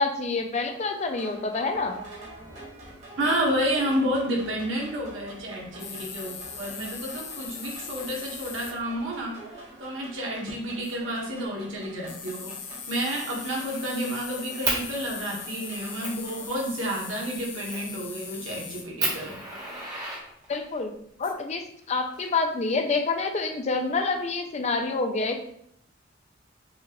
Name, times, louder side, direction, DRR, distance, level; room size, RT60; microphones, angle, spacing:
voice 1, 0.0-2.0 20.5-20.9 21.2-25.4, left 3 dB, 35° left, 5 dB, 0.4 m, -27 dB
sound 1, 1.0-16.6, right 2 dB, 40° right, 1.6 m, -47 dB
voice 2, 3.2-12.5 12.9-19.4, equal, 90° right, -3 dB, 1.3 m, -30 dB
sound 2, 5.8-8.7 10.8-10.9 12.1-18.8 21.2-21.3, left 6 dB, 80° left, 0.7 m, -40 dB
Fire, 12.5-12.8 13.1-14.1 14.6-14.8 15.4-15.5 16.0-16.2 17.7-18.0 18.5-18.6 19.0-20.8 21.8-22.8, right 2 dB, 20° right, 1.0 m, -32 dB
5.7 x 2.5 x 2.9 m, 0.70 s
head